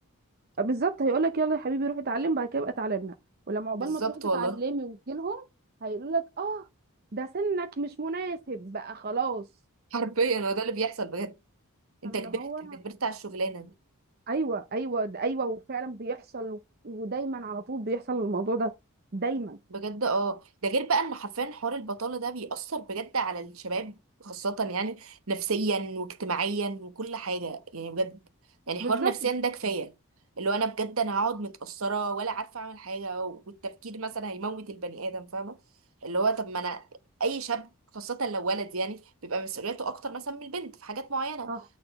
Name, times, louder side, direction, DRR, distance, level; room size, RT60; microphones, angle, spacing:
voice 1, 0.6-3.1 3.5-5.5 5.8-6.7 7.1-9.5 12.0-12.8 14.3-18.7 19.1-19.6 28.8-29.3 41.5-41.6, right 3 dB, 45° right, 0.7 m, -30 dB
voice 2, 3.7-4.6 9.9-11.3 12.0-13.7 19.7-24.0 24.2-28.2 28.7-29.9 30.4-35.6 36.0-36.8 37.2-37.7 37.9-41.5, right 4 dB, 65° right, 1.1 m, -31 dB
8.9 x 4.0 x 5.3 m
head